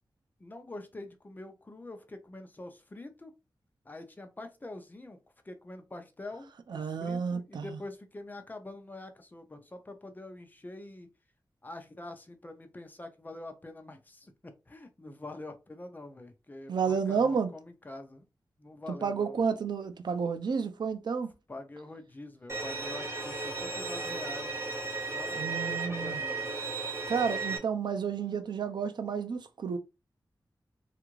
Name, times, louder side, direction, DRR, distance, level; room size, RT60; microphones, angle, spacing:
voice 1, 0.4-3.3 3.8-5.2 5.4-11.1 11.6-18.2 18.6-19.5 21.5-24.7 25.0-26.5, left 2 dB, 25° left, 0.6 m, -45 dB
voice 2, 6.7-7.8 16.7-17.5 19.0-21.3 25.3-26.2 27.1-29.8, right 6 dB, 70° right, 0.5 m, -31 dB
Bowed string instrument, 22.5-27.6, right 3 dB, 35° right, 1.0 m, -35 dB
3.3 x 2.4 x 3.0 m
wide cardioid pair, 110°, 8 cm